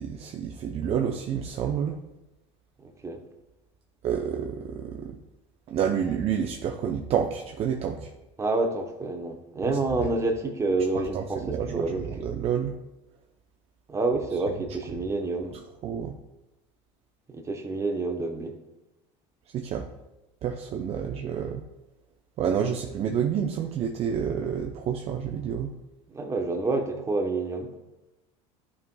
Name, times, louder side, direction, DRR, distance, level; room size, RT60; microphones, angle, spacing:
voice 1, 0.0-2.0 4.0-5.2 5.7-8.1 9.6-10.1 11.1-12.7 15.8-16.1 19.5-19.9 20.4-21.6 22.4-25.7, right 8 dB, 40° right, 0.6 m, -29 dB
voice 2, 2.8-3.2 8.4-11.4 11.6-12.1 13.9-15.6 17.3-18.6 26.1-27.7, right 3 dB, 20° right, 0.9 m, -28 dB
11.0 x 5.5 x 2.2 m
supercardioid pair, 110°, 15 cm